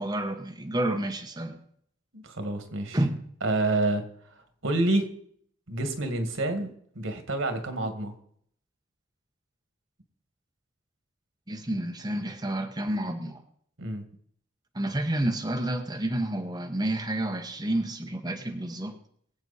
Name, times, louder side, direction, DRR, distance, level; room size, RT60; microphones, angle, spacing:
voice 1, 0.0-1.6 2.9-3.2 11.5-13.4 14.7-19.0, right 1 dB, 20° right, 3 dB, 1.1 m, -29 dB
voice 2, 2.1-3.0 3.4-4.0 4.6-5.1 5.7-8.1 13.8-14.0, right 2 dB, 90° right, 6 dB, 2.0 m, -28 dB
23.0 x 8.0 x 4.2 m, 0.65 s
head